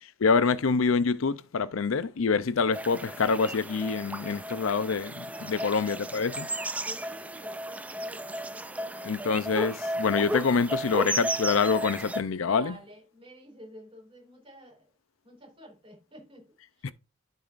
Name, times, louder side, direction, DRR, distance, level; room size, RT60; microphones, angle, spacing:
voice 1, 0.2-6.5 9.0-12.7 16.8-16.9, left 5 dB, 80° left, 0.5 m, -26 dB
sound 1, 2.7-12.2, right 1 dB, 5° right, 0.4 m, -34 dB
voice 2, 5.3-5.8 6.8-9.3 12.4-14.9 15.2-16.9, equal, 25° right, 3.5 m, -50 dB
12.0 x 5.4 x 2.5 m
head